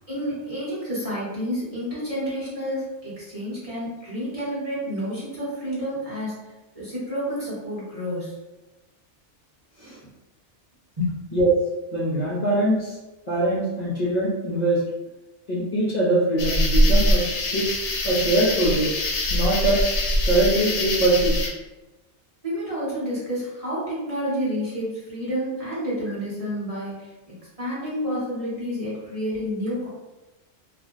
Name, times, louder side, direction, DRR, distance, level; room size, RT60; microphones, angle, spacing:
voice 1, 0.1-6.4 6.7-8.4 11.0-11.1 22.4-29.9, equal, 35° right, -8 dB, 1.0 m, -29 dB
voice 2, 11.9-13.0 13.3-14.8 15.5-17.6 18.0-18.9 19.3-19.8 20.3-21.4, right 1 dB, 40° left, -8 dB, 0.8 m, -22 dB
sound 1, 16.4-21.5, left 1 dB, 75° left, 0.9 m, -23 dB
2.5 x 2.2 x 3.7 m, 1.0 s
omnidirectional pair, 1.2 m